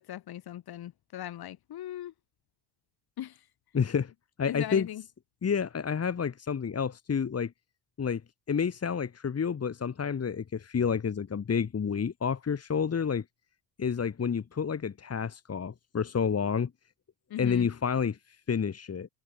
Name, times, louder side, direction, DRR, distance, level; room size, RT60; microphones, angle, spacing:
voice 1, 0.0-2.1 3.2-3.5 4.5-5.0 17.3-17.7, left 12 dB, 50° left, 7.1 m, -39 dB
voice 2, 3.7-4.1 4.4-4.9 5.4-7.5 8.0-8.2 8.5-13.2 13.8-16.7 17.4-19.1, left 6 dB, 30° left, 3.9 m, -29 dB
hypercardioid pair, 65°, 46 cm